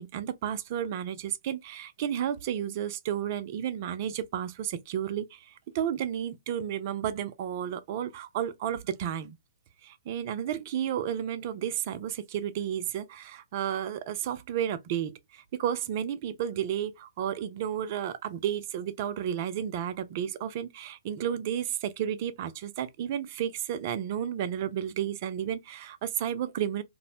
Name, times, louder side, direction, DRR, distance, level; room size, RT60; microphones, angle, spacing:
voice 1, 0.0-9.4 9.8-26.8, right 9 dB, 40° right, 0.4 m, -32 dB
2.5 x 2.0 x 2.7 m
figure-of-eight pair, 120°, 2 cm